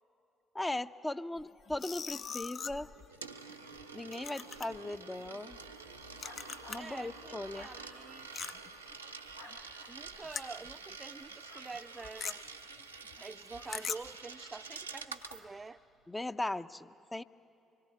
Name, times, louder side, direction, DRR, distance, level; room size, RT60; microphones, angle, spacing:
voice 1, 0.5-2.9 3.9-5.6 6.7-7.7 16.1-17.2, left 2 dB, 15° left, 11 dB, 0.6 m, -38 dB
sound 1, 1.4-7.0 7.3-10.9 11.2-11.4 11.7-14.2, left 6 dB, 50° left, 0.7 m, -44 dB
Coin (dropping), 2.7-15.4, right 5 dB, 90° right, 0.8 m, -48 dB
sound 2, 5.5-15.5, left 2 dB, 90° left, 2.2 m, -58 dB
voice 2, 6.8-8.3 9.9-12.4 13.2-15.8, right 3 dB, 30° right, 12 dB, 0.6 m, -47 dB
25.0 x 21.0 x 9.5 m, 2.8 s
figure-of-eight pair, 45°, 0 cm